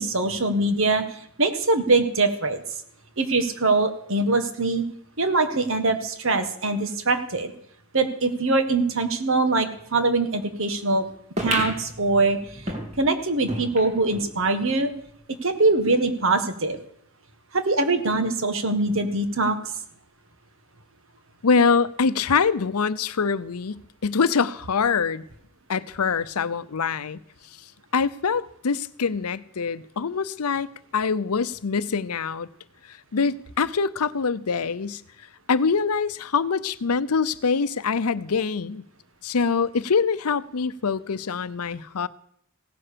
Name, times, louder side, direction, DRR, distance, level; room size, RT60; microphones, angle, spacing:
voice 1, 0.0-2.6 3.2-4.8 5.2-7.5 7.9-11.0 11.4-12.4 13.0-14.9 15.4-16.8 17.5-19.6, right 3 dB, 60° right, 1.6 m, -23 dB
sound 1, 11.4-14.3 14.8-14.9 15.1-15.2 15.9-16.0, equal, 30° right, 2.6 m, -32 dB
voice 2, 21.4-25.2 25.7-27.2 27.9-30.7 30.9-32.5 32.9-35.0 35.5-38.8 39.2-42.1, left 5 dB, 85° left, 0.7 m, -24 dB
17.0 x 10.0 x 6.9 m
head